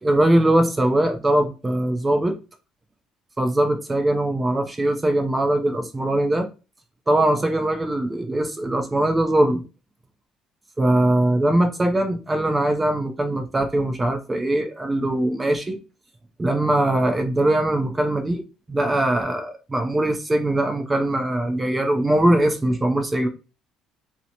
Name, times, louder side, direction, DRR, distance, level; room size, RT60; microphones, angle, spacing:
voice 1, 0.0-2.4 3.4-6.5 7.1-9.6 10.8-15.8 16.4-23.3, right 1 dB, 20° right, 6 dB, 0.5 m, -21 dB
2.8 x 2.1 x 2.7 m, 0.32 s
supercardioid pair, 70°, 0 cm